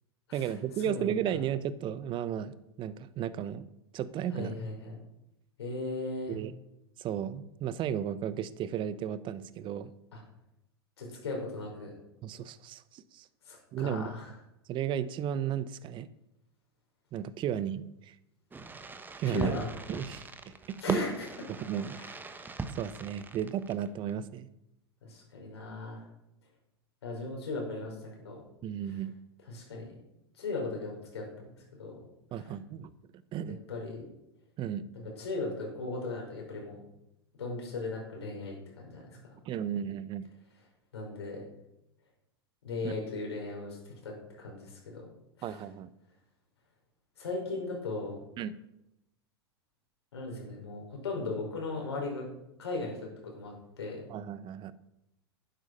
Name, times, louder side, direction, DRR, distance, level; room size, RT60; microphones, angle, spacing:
voice 1, 0.3-3.6 3.9-4.5 6.3-6.5 7.0-9.9 12.2-13.3 13.7-14.1 14.7-16.1 17.1-18.1 19.2-19.5 19.9-21.0 21.5-22.0 22.8-24.5 28.6-29.1 32.3-32.9 33.3-33.6 34.6-34.8 39.4-40.3 42.8-42.9 45.4-45.9 48.4-48.6 54.1-54.7, right 9 dB, 35° right, 16 dB, 0.9 m, -34 dB
voice 2, 4.3-4.9 5.6-6.3 10.1-10.2 11.0-11.9 13.5-14.3 19.3-19.7 20.8-21.1 22.0-22.1 25.0-26.0 27.0-28.4 29.5-29.9 30.4-31.5 31.8-32.0 33.7-34.0 34.9-36.8 37.4-39.2 40.9-41.4 42.6-45.0 45.4-45.5 47.2-48.2 50.1-52.3 52.6-54.0, left 3 dB, 80° left, 0 dB, 5.5 m, -37 dB
Fireworks, 18.5-24.1, right 4 dB, 15° right, 1.2 m, -40 dB
11.5 x 9.7 x 5.5 m, 0.85 s
hypercardioid pair, 95°, 14 cm